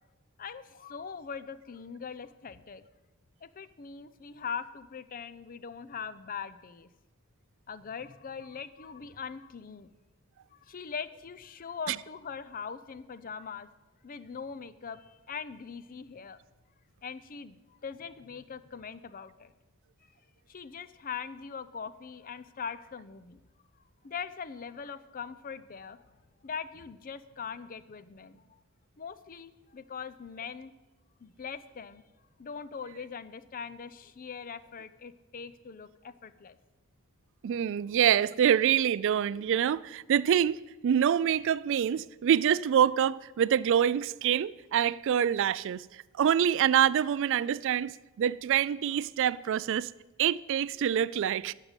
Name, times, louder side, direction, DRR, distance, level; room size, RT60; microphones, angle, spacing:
voice 1, 0.4-2.8 3.4-6.9 7.7-9.9 10.5-13.7 14.0-16.4 17.0-19.5 20.5-23.4 24.0-26.0 26.4-28.5 29.0-30.7 31.2-32.0 32.4-36.6, left 6 dB, 40° left, 0.5 m, -41 dB
voice 2, 37.4-40.6 40.8-49.9 50.2-51.5, right 9 dB, 60° right, 0.3 m, -26 dB
11.0 x 6.6 x 9.0 m
head